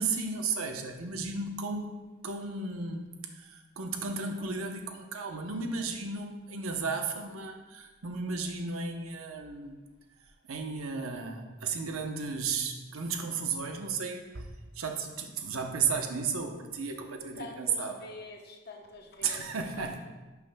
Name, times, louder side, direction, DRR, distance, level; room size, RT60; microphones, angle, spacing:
voice 1, 0.0-9.8 10.5-14.5 14.8-18.1 19.2-20.0, right 4 dB, 90° right, 4 dB, 0.9 m, -34 dB
voice 2, 17.3-19.4 19.7-20.0, left 2 dB, 50° left, 2 dB, 0.9 m, -46 dB
11.0 x 6.0 x 2.3 m, 1.2 s
head